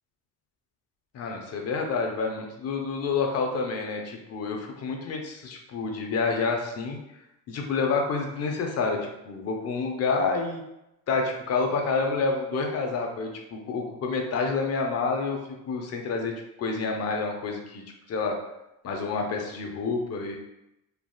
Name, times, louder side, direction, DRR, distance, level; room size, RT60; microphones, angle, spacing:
voice 1, 1.1-7.0 7.5-10.6 11.1-15.4 15.7-16.3 16.6-17.8 18.1-18.4 18.8-20.4, left 4 dB, 45° left, 2 dB, 0.6 m, -28 dB
3.4 x 2.4 x 2.3 m, 0.89 s
cardioid pair, 105°, 37 cm